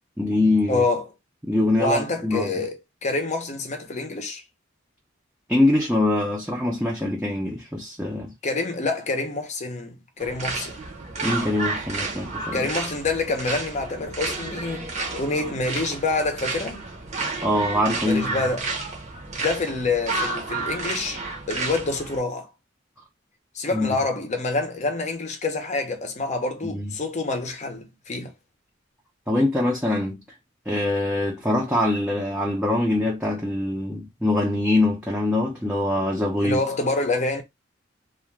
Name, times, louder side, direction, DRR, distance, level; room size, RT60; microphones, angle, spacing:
voice 1, 0.2-0.8 1.4-2.5 5.5-8.3 11.2-12.6 17.4-18.4 23.7-24.0 26.6-26.9 29.3-30.2 30.7-36.6, left 1 dB, 5° right, 0.6 m, -23 dB
voice 2, 0.7-1.1 1.8-4.4 8.4-10.8 12.5-16.8 18.0-18.7 19.4-22.5 23.5-28.3 36.4-37.4, left 3 dB, 40° left, 0.7 m, -27 dB
sound 1, 10.2-22.2, right 3 dB, 40° right, 0.8 m, -31 dB
2.4 x 2.2 x 3.1 m
head